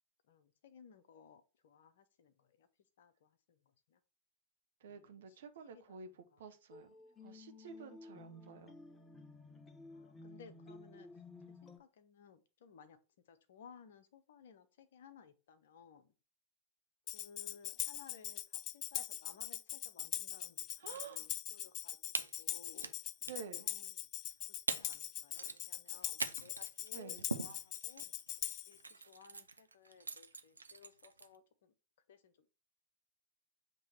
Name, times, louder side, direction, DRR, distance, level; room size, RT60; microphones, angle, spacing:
voice 1, 0.3-2.7 3.0-4.0 4.9-6.0 6.3-6.4 9.9-11.1 11.5-13.0 13.3-16.1 17.1-22.9 23.6-24.0 24.7-28.1 28.7-31.7 32.1-32.5, left 6 dB, 60° left, 0.8 m, -60 dB
voice 2, 4.8-6.1 6.4-6.9 7.2-8.8 20.8-21.2 23.3-23.7 26.9-27.3, right 6 dB, 60° right, 0.9 m, -50 dB
sound 1, 6.7-11.8, left 2 dB, 15° left, 0.8 m, -54 dB
Tambourine, 17.1-28.8, left 13 dB, 35° left, 0.3 m, -42 dB
sound 2, 20.7-21.1 21.4-21.5 22.1-23.0 23.2-23.5 24.3-24.4 24.7-25.0 25.3-31.4, right 4 dB, 80° right, 0.5 m, -43 dB
7.7 x 3.0 x 4.3 m
figure-of-eight pair, 90°, 0 cm